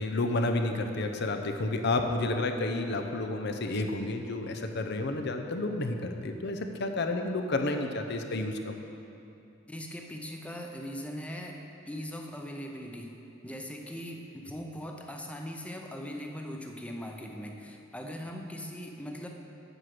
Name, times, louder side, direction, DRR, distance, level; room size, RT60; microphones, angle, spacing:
voice 1, 0.0-8.8, left 2 dB, 60° left, 6 dB, 0.7 m, -30 dB
voice 2, 9.7-11.6 11.9-13.1 13.4-19.3, equal, 5° left, 2 dB, 0.7 m, -40 dB
8.0 x 7.9 x 5.9 m, 2.7 s
head